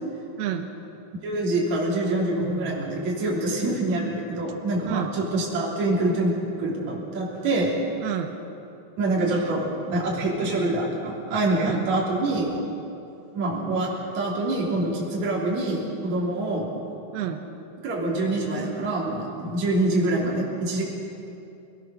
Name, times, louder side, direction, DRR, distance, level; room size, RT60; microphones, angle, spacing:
voice 1, 1.2-6.3 6.6-7.8 9.0-12.5 13.3-16.7 17.8-20.8, right 2 dB, 50° right, -5 dB, 4.5 m, -25 dB
voice 2, 4.8-5.1 8.0-8.4 9.3-9.5 11.6-11.9 17.1-17.5, right 10 dB, 85° right, 5 dB, 3.1 m, -30 dB
27.5 x 18.5 x 6.5 m, 2.8 s
omnidirectional pair, 4.4 m